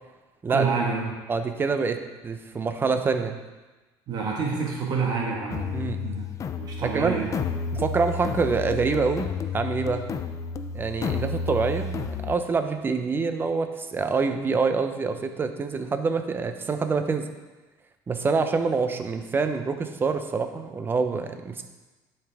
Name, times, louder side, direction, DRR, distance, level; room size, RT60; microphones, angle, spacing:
voice 1, 0.5-1.2 4.1-6.3 6.6-7.3, right 5 dB, 45° right, -1 dB, 1.6 m, -28 dB
voice 2, 1.3-3.4 5.7-6.0 6.8-7.2 7.7-10.1 10.7-12.0 12.2-17.3 18.1-21.6, right 4 dB, 25° right, 8 dB, 0.7 m, -26 dB
sound 1, 5.5-12.4, left 5 dB, 35° left, 0.5 m, -31 dB
11.0 x 5.6 x 3.5 m, 1.2 s
cardioid pair, 120°, 9 cm